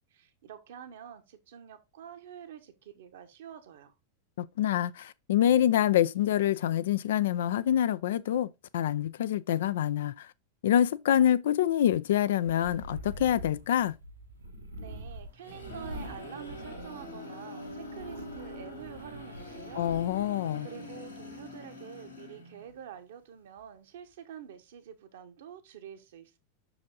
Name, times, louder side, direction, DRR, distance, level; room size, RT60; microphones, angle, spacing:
voice 1, 0.1-3.9 14.8-19.9 20.6-26.4, right 9 dB, 55° right, 1.1 m, -47 dB
voice 2, 4.4-8.5 8.7-10.3 10.6-13.9 19.8-20.7, left 11 dB, 60° left, 0.4 m, -26 dB
sound 1, 12.4-17.2 17.6-20.0, equal, 80° right, 1.9 m, -45 dB
sound 2, 15.1-22.8, left 1 dB, 85° left, 2.1 m, -44 dB
6.2 x 4.9 x 3.7 m
figure-of-eight pair, 90°, 0 cm